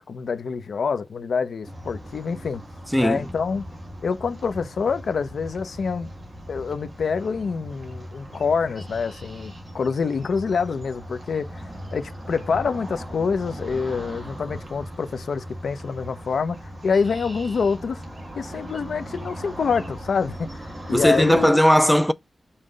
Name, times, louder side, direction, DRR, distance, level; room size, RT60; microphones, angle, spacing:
voice 1, 0.0-2.6 3.0-3.7 4.0-6.1 6.5-11.7 11.9-18.0 18.4-21.6, left 5 dB, 75° left, 0.7 m, -26 dB
sound 1, 1.6-21.5, equal, 30° right, 2.2 m, -39 dB
voice 2, 20.9-22.1, equal, ahead, 0.3 m, -17 dB
5.6 x 3.3 x 5.1 m
wide cardioid pair, 135°, 0 cm